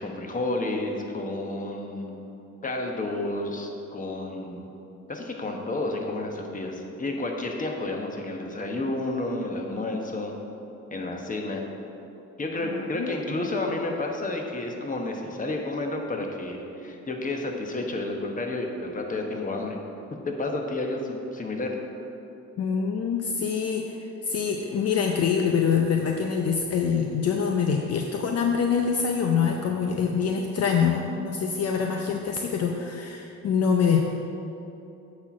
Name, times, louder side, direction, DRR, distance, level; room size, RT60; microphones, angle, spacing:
voice 1, 0.0-2.2 2.6-4.7 5.1-10.3 10.9-11.6 12.4-19.8 20.2-21.7, left 2 dB, 25° left, 2 dB, 1.1 m, -31 dB
voice 2, 12.6-13.1 22.6-34.0, left 6 dB, 55° left, 2 dB, 0.6 m, -25 dB
8.6 x 4.3 x 6.0 m, 2.9 s
cardioid pair, 90°, 30 cm